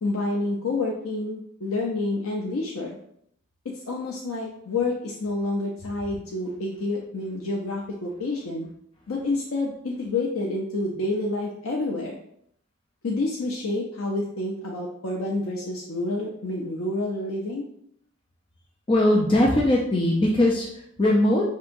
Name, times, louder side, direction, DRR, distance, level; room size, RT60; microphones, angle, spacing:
voice 1, 0.0-3.0 3.6-8.7 9.1-12.1 13.0-17.7, left 2 dB, 80° left, -2 dB, 0.6 m, -28 dB
voice 2, 18.9-21.5, left 1 dB, 25° left, -2 dB, 0.4 m, -20 dB
6.0 x 2.7 x 2.6 m, 0.69 s
head